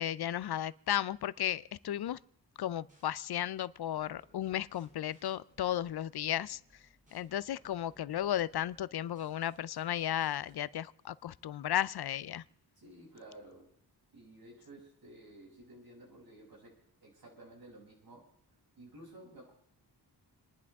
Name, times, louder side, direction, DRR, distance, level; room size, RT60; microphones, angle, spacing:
voice 1, 0.0-2.2 2.6-6.6 7.1-12.4, left 11 dB, 65° left, 19 dB, 0.5 m, -34 dB
sound 1, 2.6-3.1 3.9-10.5, equal, 20° right, 3.2 m, -66 dB
voice 2, 12.8-13.7 14.1-18.2 18.8-19.5, right 1 dB, 60° right, -3 dB, 7.5 m, -53 dB
28.5 x 11.0 x 3.6 m, 0.68 s
wide cardioid pair, 165°, 41 cm